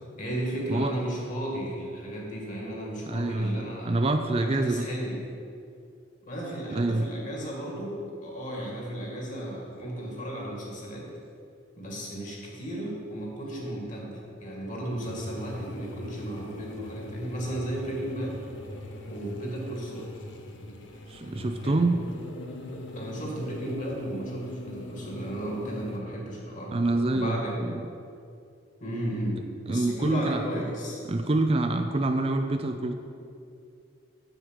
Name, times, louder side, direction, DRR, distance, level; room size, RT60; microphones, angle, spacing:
voice 1, 0.2-3.9 4.4-5.2 6.2-11.1 11.8-18.4 19.1-20.1 21.6-21.8 22.9-26.8 27.1-27.6 28.8-31.0, right 1 dB, 40° left, -2 dB, 2.3 m, -34 dB
voice 2, 3.1-4.9 6.7-7.1 21.1-22.1 26.7-27.7 29.7-30.6 31.1-32.9, right 2 dB, 30° right, 6 dB, 0.5 m, -26 dB
sound 1, 15.0-26.0, left 1 dB, 80° left, 1.1 m, -40 dB
7.8 x 7.3 x 6.5 m, 2.5 s
head